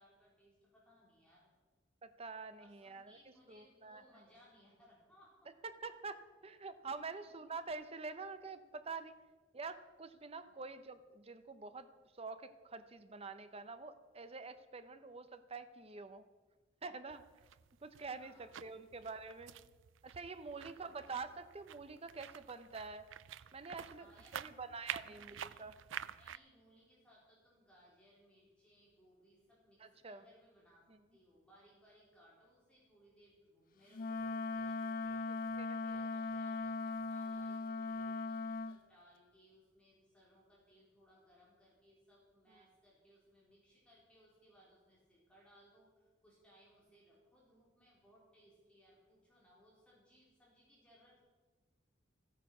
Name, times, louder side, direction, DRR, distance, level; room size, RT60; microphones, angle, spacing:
voice 1, 0.0-1.5 2.6-5.4 7.1-7.3 10.4-10.7 18.2-19.1 20.5-21.1 23.9-24.7 25.0-25.7 26.1-30.8 31.1-35.3 35.8-51.2, equal, 5° left, -6 dB, 4.0 m, -66 dB
voice 2, 2.0-3.2 3.5-4.0 5.6-9.1 9.5-11.9 12.2-16.2 16.8-17.2 17.8-19.5 20.0-23.0 23.5-24.1 24.3-25.7 29.8-30.2 30.9-31.0 35.6-36.0 42.5-42.6, right 4 dB, 30° right, 11 dB, 0.7 m, -47 dB
sound 1, 17.1-26.4, right 10 dB, 75° right, 0.4 m, -49 dB
Wind instrument woodwind instrument, 33.9-38.8, left 3 dB, 45° left, 0.5 m, -39 dB
14.5 x 9.2 x 6.1 m, 1.3 s
head